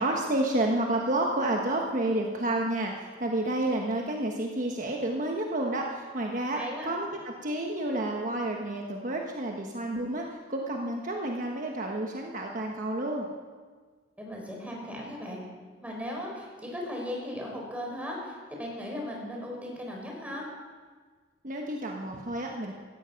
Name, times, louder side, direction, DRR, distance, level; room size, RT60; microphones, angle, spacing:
voice 1, 0.0-13.3 21.4-22.7, right 1 dB, 45° right, 1 dB, 1.2 m, -30 dB
voice 2, 6.6-6.9 14.2-15.4 15.8-20.5, left 1 dB, 10° right, -1 dB, 4.1 m, -37 dB
17.0 x 14.0 x 5.8 m, 1.5 s
head